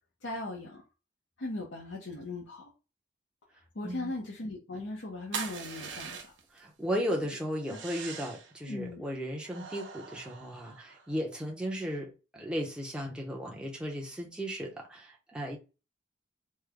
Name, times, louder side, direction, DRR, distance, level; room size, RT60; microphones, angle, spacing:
voice 1, 0.2-0.8 1.4-2.7 3.7-6.3 7.2-7.4 7.7-7.8 8.7-9.0, left 2 dB, 90° left, 0.9 m, -38 dB
voice 2, 3.8-4.1 6.5-15.6, equal, 5° right, 0.7 m, -35 dB
sound 1, 5.3-6.6 7.6-8.5 9.4-11.1, right 6 dB, 85° right, 0.8 m, -42 dB
3.2 x 2.2 x 3.6 m
head